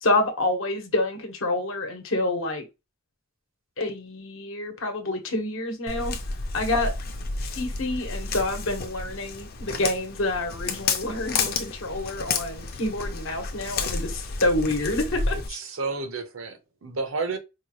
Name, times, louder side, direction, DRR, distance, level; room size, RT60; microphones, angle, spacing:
voice 1, 0.0-2.6 3.8-6.2 6.5-6.9 7.6-15.6, left 2 dB, 70° left, 1.0 m, -27 dB
Walk footsteps, 5.9-15.5, left 4 dB, 50° left, 0.6 m, -31 dB
voice 2, 15.3-17.4, right 3 dB, 75° right, 0.8 m, -31 dB
4.5 x 2.3 x 3.0 m
head